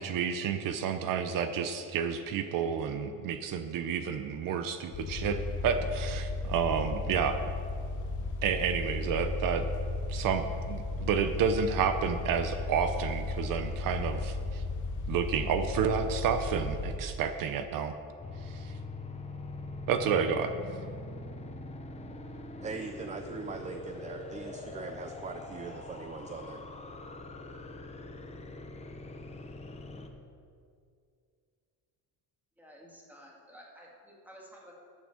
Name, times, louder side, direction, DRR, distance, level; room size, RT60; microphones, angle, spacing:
voice 1, 0.0-7.4 8.4-9.7 10.1-14.6 15.1-17.9 18.4-18.7 19.9-20.5, right 7 dB, 65° right, 9 dB, 0.7 m, -30 dB
sound 1, 4.9-17.0, left 2 dB, 55° left, 1.1 m, -35 dB
sound 2, 18.2-30.1, left 2 dB, 20° left, 0.8 m, -43 dB
voice 2, 22.6-26.6, right 5 dB, 20° right, 6 dB, 0.4 m, -41 dB
voice 3, 32.6-34.7, equal, 5° right, -3 dB, 2.2 m, -52 dB
10.5 x 6.2 x 7.2 m, 2.3 s
cardioid pair, 135°, 36 cm